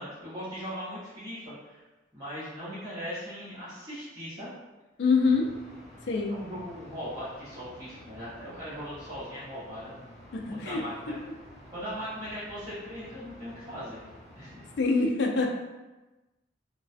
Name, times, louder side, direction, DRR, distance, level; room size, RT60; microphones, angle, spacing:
voice 1, 0.0-1.8 2.1-4.5 6.3-10.1 10.4-11.2 11.7-14.0 14.3-14.5, equal, 20° right, -14 dB, 0.9 m, -39 dB
voice 2, 5.0-5.5 6.1-6.4 10.3-10.8 11.1-11.2 14.8-15.5, left 4 dB, 65° left, 2 dB, 0.3 m, -25 dB
sound 1, 5.2-14.9, equal, 40° left, 0.8 m, -51 dB
2.3 x 2.2 x 2.5 m, 1.1 s
head